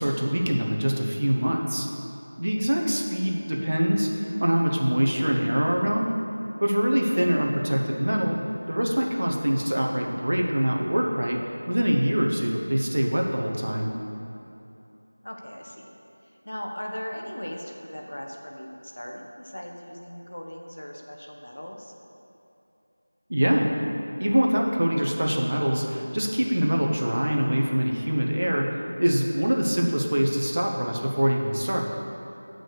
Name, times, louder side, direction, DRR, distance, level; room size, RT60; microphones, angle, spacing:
voice 1, 0.0-1.9 2.4-6.1 6.6-13.9 23.3-23.7 24.2-31.8, equal, 40° right, 0 dB, 0.8 m, -24 dB
voice 2, 15.2-15.8 16.4-21.9, equal, 45° left, 1 dB, 0.9 m, -38 dB
6.8 x 6.1 x 6.4 m, 2.8 s
figure-of-eight pair, 180°, 0 cm